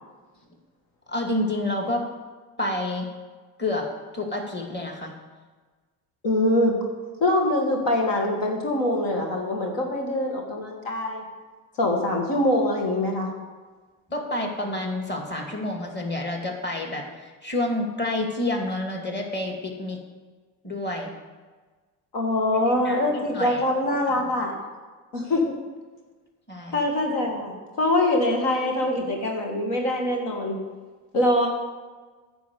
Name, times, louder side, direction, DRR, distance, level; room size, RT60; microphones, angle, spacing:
voice 1, 1.1-2.1 2.6-3.1 3.6-3.9 4.1-5.1 14.1-20.0 20.6-21.1 22.7-23.6 24.1-24.5 26.5-26.9, left 1 dB, 25° left, 2 dB, 2.5 m, -29 dB
voice 2, 6.2-6.8 7.2-11.2 11.8-13.3 22.1-24.5 25.1-25.5 26.7-30.6 31.1-31.5, left 1 dB, 65° left, 0 dB, 2.1 m, -24 dB
9.3 x 6.2 x 8.2 m, 1.4 s
hypercardioid pair, 60°, 44 cm